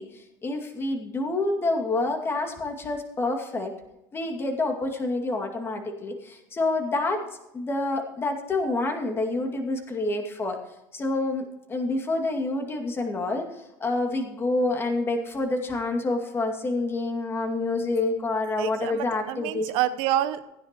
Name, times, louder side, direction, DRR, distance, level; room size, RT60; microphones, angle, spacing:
voice 1, 0.0-3.7 4.1-7.2 7.5-10.6 10.9-19.7, left 2 dB, 25° left, 3 dB, 2.2 m, -28 dB
voice 2, 18.6-20.4, right 12 dB, 65° right, 12 dB, 0.9 m, -27 dB
15.5 x 10.0 x 3.0 m, 0.93 s
supercardioid pair, 115°, 10 cm